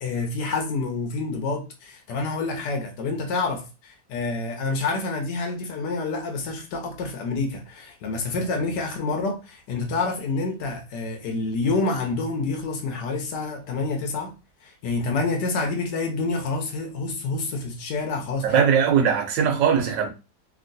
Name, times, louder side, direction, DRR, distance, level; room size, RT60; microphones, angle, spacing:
voice 1, 0.0-14.3 14.6-18.5, left 3 dB, 75° left, 1.2 m, -28 dB
voice 2, 18.4-20.1, right 7 dB, 80° right, 1.3 m, -20 dB
3.0 x 2.8 x 2.6 m
omnidirectional pair, 2.0 m